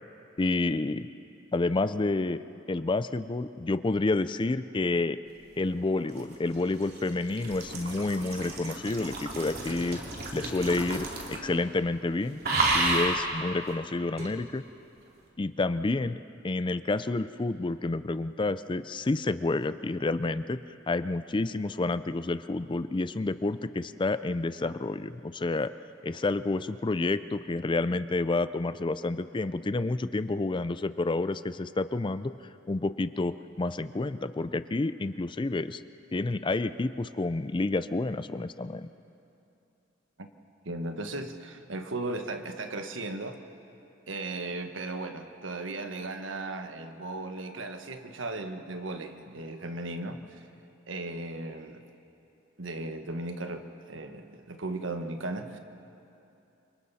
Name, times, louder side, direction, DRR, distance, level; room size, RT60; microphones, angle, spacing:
voice 1, 0.4-1.1 1.5-2.4 2.7-5.2 5.6-10.0 10.3-12.4 12.7-14.6 15.4-16.2 16.4-20.6 20.9-25.7 26.0-32.3 32.7-35.8 36.1-38.9, left 2 dB, 25° left, 13 dB, 0.4 m, -29 dB
sound 1, 5.8-11.6 11.8-12.1 12.4-13.2 14.2-14.3, right 2 dB, 55° right, 3.1 m, -31 dB
voice 2, 40.6-43.4 44.1-50.4 50.9-51.8 52.6-55.6, right 2 dB, 85° right, 6 dB, 1.4 m, -36 dB
29.0 x 25.0 x 4.2 m, 2.8 s
head